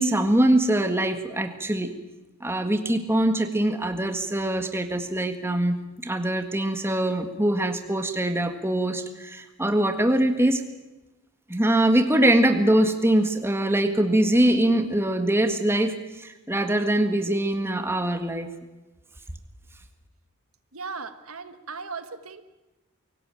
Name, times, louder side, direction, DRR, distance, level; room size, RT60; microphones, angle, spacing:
voice 1, 0.0-1.9 2.4-10.6 11.5-18.5, right 1 dB, 10° right, 7 dB, 1.7 m, -23 dB
voice 2, 20.7-22.4, right 4 dB, 70° right, 10 dB, 1.4 m, -37 dB
24.0 x 17.5 x 9.0 m, 1.1 s
head